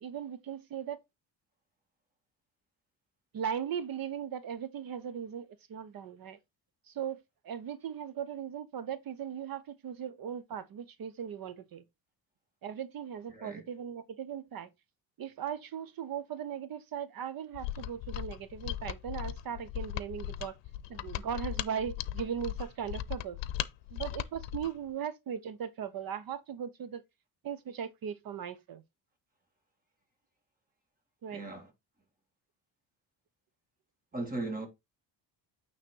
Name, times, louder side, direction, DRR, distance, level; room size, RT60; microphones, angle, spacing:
voice 1, 0.0-1.0 3.3-6.4 6.9-7.2 7.4-11.8 12.6-14.7 15.2-20.5 20.9-23.4 23.9-27.0 27.4-28.8 31.2-31.4, right 8 dB, 50° right, 0.9 m, -38 dB
voice 2, 13.3-13.6 31.3-31.7 34.1-34.7, right 2 dB, 20° right, 2.4 m, -37 dB
Mechanisms, 17.5-24.8, left 14 dB, 80° left, 0.7 m, -38 dB
8.9 x 3.3 x 4.5 m
cardioid pair, 130°, 43 cm